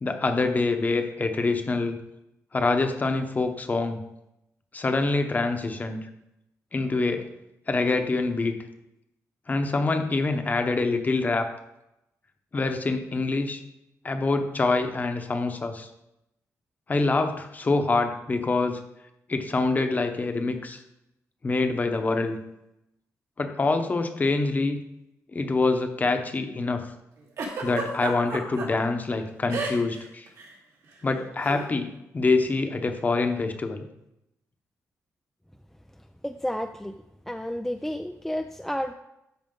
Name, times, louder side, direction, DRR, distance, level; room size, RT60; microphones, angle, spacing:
voice 1, 0.0-2.0 2.5-4.0 4.7-6.0 6.7-7.3 7.7-8.6 9.5-11.5 12.5-13.6 14.0-15.9 16.9-18.8 19.3-20.8 21.4-22.4 23.4-24.8 25.3-26.8 27.6-30.3 31.0-33.9, left 3 dB, 30° left, 6 dB, 0.9 m, -25 dB
Giggle, 27.4-28.7 29.5-30.0 30.3-30.5 31.4-31.6, right 4 dB, 75° right, 2.5 m, -31 dB
voice 2, 36.2-36.9 37.3-38.9, equal, 5° left, 6 dB, 0.3 m, -31 dB
13.0 x 5.0 x 3.8 m, 0.86 s
cardioid pair, 125°, 6 cm